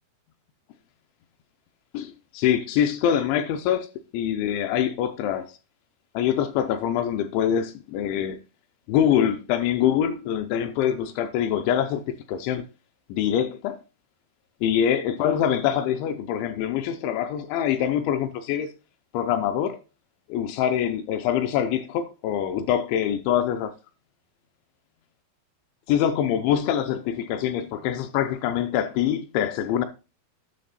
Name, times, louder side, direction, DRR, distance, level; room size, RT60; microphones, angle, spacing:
voice 1, 1.9-3.9 4.1-5.6 6.1-8.4 8.9-12.7 13.1-13.8 14.6-18.7 19.1-19.8 20.3-23.7 25.9-29.9, left 9 dB, 85° left, 2.8 m, -24 dB
10.0 x 6.7 x 4.0 m
omnidirectional pair, 5.6 m